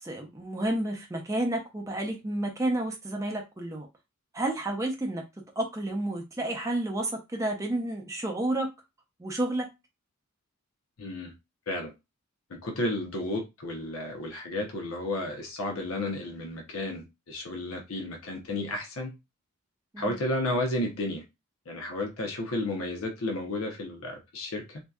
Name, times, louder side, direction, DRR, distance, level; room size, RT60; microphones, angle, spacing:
voice 1, 0.0-3.9 4.3-5.2 5.6-8.7 9.2-9.7 19.9-20.2, right 1 dB, 15° right, 0.5 m, -30 dB
voice 2, 11.0-11.3 11.7-11.9 12.5-19.1 20.0-21.2 21.7-24.8, left 1 dB, 75° left, 0.7 m, -32 dB
2.6 x 2.2 x 2.3 m
head